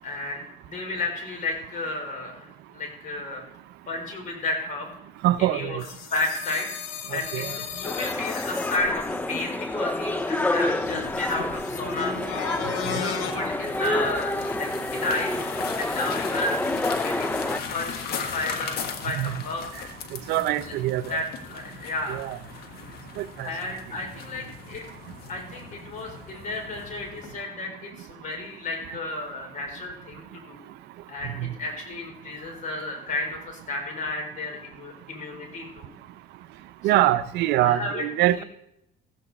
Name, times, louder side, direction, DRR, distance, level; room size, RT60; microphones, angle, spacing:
voice 1, 0.0-3.4 3.9-4.9 5.5-5.8 6.1-6.7 7.1-12.2 12.6-15.3 15.8-16.6 17.0-17.3 17.7-19.6 20.6-20.7 21.1-22.3 23.4-24.8 25.3-30.6 31.1-31.3 31.6-35.9 36.9-37.1 37.6-38.1 38.3-38.5, left 2 dB, 50° left, 4.4 m, -32 dB
voice 2, 5.2-5.8 7.1-7.5 12.9-13.0 19.2-19.3 20.3-21.0 22.1-22.4 23.2-23.5 31.4-31.5 36.8-38.4, right 14 dB, 85° right, 0.6 m, -24 dB
sound 1, 5.8-13.3, left 8 dB, 85° left, 1.3 m, -36 dB
sound 2, 7.8-17.6, left 2 dB, 10° left, 0.5 m, -28 dB
sound 3, 10.8-27.3, left 6 dB, 65° left, 1.6 m, -38 dB
14.5 x 8.5 x 4.2 m
cardioid pair, 110°, 17 cm